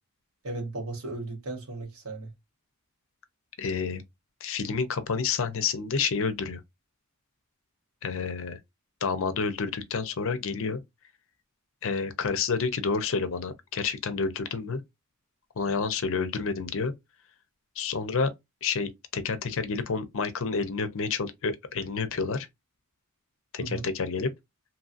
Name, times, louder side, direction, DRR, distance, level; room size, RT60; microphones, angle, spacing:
voice 1, 0.4-2.3 23.6-23.9, right 2 dB, 70° right, 1.2 m, -36 dB
voice 2, 3.6-4.0 4.4-6.6 8.0-8.6 9.0-10.8 11.8-14.8 15.6-16.9 17.8-18.3 18.6-22.5 23.5-24.3, left 5 dB, 60° left, 0.6 m, -29 dB
2.9 x 2.7 x 2.4 m
head